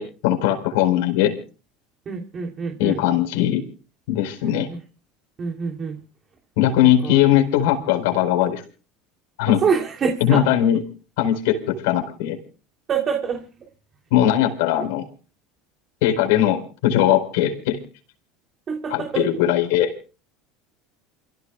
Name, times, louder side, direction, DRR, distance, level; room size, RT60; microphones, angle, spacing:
voice 1, 0.0-1.3 2.8-3.6 4.1-4.7 6.6-8.6 9.4-9.6 10.2-10.8 11.2-12.4 14.1-15.0 16.0-17.8 18.9-19.9, left 11 dB, 80° left, 5 dB, 4.5 m, -19 dB
voice 2, 2.0-3.0 4.4-4.8 5.4-6.0 6.8-7.2 9.5-10.5 12.9-13.4 18.7-19.4, right 6 dB, 35° right, 2 dB, 3.1 m, -26 dB
29.0 x 16.0 x 2.4 m, 0.37 s
supercardioid pair, 105°, 0 cm